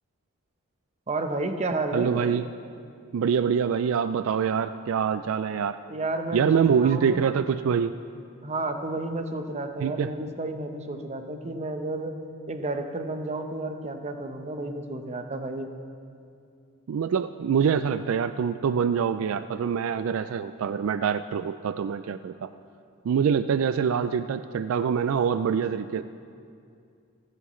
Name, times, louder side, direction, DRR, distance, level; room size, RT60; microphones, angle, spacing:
voice 1, 1.1-2.3 5.9-7.2 8.4-12.1 12.5-15.7, right 2 dB, 30° right, 6 dB, 0.8 m, -31 dB
voice 2, 1.9-2.4 3.1-5.8 6.3-8.0 9.8-10.1 16.9-22.5 23.0-26.0, right 7 dB, 70° right, 11 dB, 0.3 m, -25 dB
28.5 x 9.8 x 3.1 m, 2.4 s
head